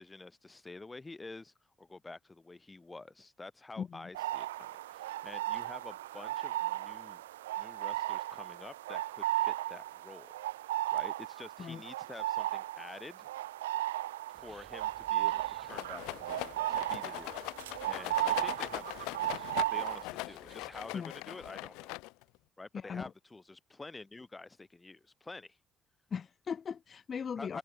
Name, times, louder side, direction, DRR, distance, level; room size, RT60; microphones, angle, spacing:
voice 1, 0.0-7.2 7.6-10.3 10.9-13.3 14.3-21.9 22.6-25.6 27.4-27.6, left 3 dB, 20° left, 6.8 m, -49 dB
sound 1, 4.1-20.0, right 15 dB, 80° right, 0.3 m, -35 dB
sound 2, 14.3-21.0, right 6 dB, 40° right, 7.0 m, -59 dB
Rattle, 15.7-22.4, left 25 dB, 70° left, 1.9 m, -41 dB
voice 2, 22.7-23.1 26.1-27.6, left 7 dB, 45° left, 2.1 m, -38 dB
figure-of-eight pair, 45°, 0 cm